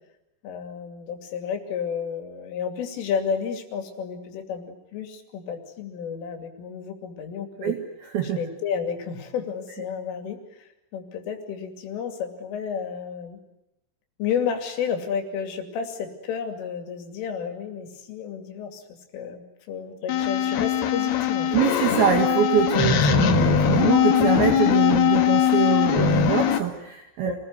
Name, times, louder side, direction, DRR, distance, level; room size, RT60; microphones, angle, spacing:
voice 1, 0.4-7.7 8.2-13.4 14.2-18.8 19.1-21.5 27.2-27.4, left 7 dB, 85° left, 6 dB, 5.2 m, -31 dB
voice 2, 7.6-8.4 21.5-27.4, right 9 dB, 60° right, 3 dB, 3.4 m, -24 dB
sound 1, 20.1-26.6, left 8 dB, 60° left, 3.3 m, -21 dB
26.0 x 20.0 x 9.5 m, 0.87 s
omnidirectional pair, 5.6 m